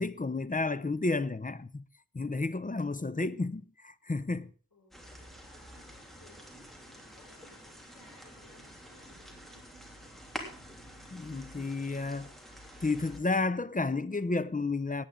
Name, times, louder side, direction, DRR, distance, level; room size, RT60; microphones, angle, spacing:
voice 1, 0.0-1.8 2.1-4.5 11.1-12.3 12.8-15.0, left 3 dB, 20° left, 0.6 m, -31 dB
voice 2, 4.7-5.2 5.7-9.8, left 2 dB, 80° left, 5.7 m, -62 dB
sound 1, 4.9-13.2, equal, ahead, 3.2 m, -48 dB
17.5 x 9.6 x 3.8 m
wide cardioid pair, 60°, 36 cm